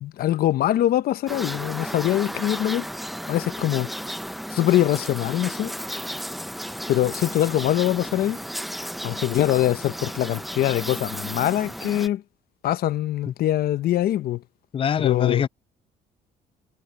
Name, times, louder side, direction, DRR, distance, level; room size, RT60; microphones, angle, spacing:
voice 1, 0.0-2.9 3.3-3.9 4.5-5.7 6.9-8.4 9.0-12.2 12.6-14.4 15.0-15.5, left 13 dB, 65° left, 0.9 m, -23 dB
sound 1, 1.3-12.1, equal, ahead, 0.8 m, -34 dB
voice 2, 14.7-15.5, left 8 dB, 30° left, 0.4 m, -24 dB
cardioid pair, 110°, 17 cm